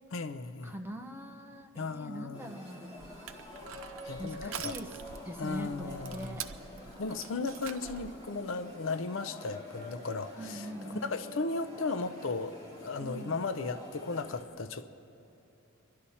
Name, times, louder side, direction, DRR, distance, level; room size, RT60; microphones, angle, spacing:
voice 1, 0.1-0.7 1.8-2.5 4.0-4.7 5.4-6.3 7.0-15.0, left 3 dB, 70° left, 0.6 m, -36 dB
voice 2, 0.6-3.2 4.2-5.0 5.2-6.5 10.4-11.2 13.0-13.4, equal, 10° right, 0.8 m, -42 dB
sound 1, 2.3-14.4, left 1 dB, 20° left, 2.5 m, -47 dB
Crushing, 3.0-8.2, right 8 dB, 75° right, 0.6 m, -45 dB
25.0 x 11.5 x 4.2 m
head